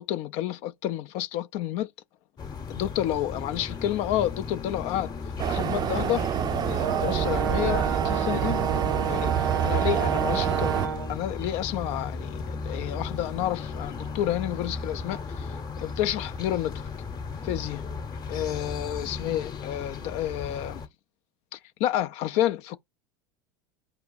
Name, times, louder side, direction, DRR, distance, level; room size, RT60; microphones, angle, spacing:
voice 1, 0.0-1.9 2.7-5.1 5.4-6.3 6.7-8.6 9.1-10.8 11.1-16.9 17.4-17.8 18.3-20.8 21.5-22.8, left 12 dB, 55° left, 0.4 m, -30 dB
sound 1, 2.4-20.9, left 4 dB, 30° left, 0.9 m, -36 dB
sound 2, 5.4-10.9, right 10 dB, 30° right, 0.4 m, -27 dB
Brass instrument, 6.8-11.2, right 8 dB, 90° right, 0.4 m, -30 dB
4.6 x 2.8 x 3.9 m
hypercardioid pair, 90°, 13 cm